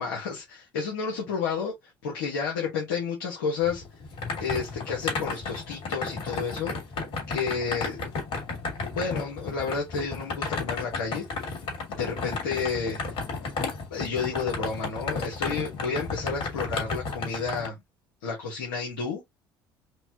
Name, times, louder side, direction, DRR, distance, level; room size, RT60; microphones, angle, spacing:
voice 1, 0.0-3.8 4.4-6.7 7.3-8.0 8.9-11.2 11.9-13.0 13.9-17.8 18.2-19.2, left 5 dB, 85° left, 1.2 m, -31 dB
sound 1, 3.7-17.7, left 4 dB, 60° left, 2.7 m, -33 dB
5.1 x 2.3 x 2.9 m
hypercardioid pair, 65°, 11 cm